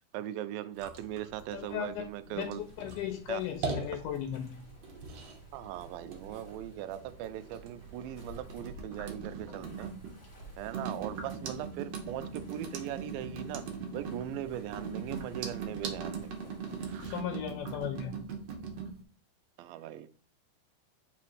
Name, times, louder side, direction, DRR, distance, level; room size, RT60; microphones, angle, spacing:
voice 1, 0.1-2.6 3.3-3.4 5.5-9.9 10.6-13.6 13.9-16.3 16.8-17.2 19.6-20.1, right 12 dB, 90° right, 12 dB, 2.4 m, -39 dB
sound 1, 0.8-18.9, right 5 dB, 65° right, 1.8 m, -40 dB
voice 2, 1.5-4.6 17.0-18.1, left 10 dB, 80° left, 6 dB, 2.0 m, -36 dB
sound 2, 2.5-17.2, left 1 dB, 30° left, 1.2 m, -56 dB
4.9 x 4.2 x 4.6 m, 0.42 s
omnidirectional pair, 4.1 m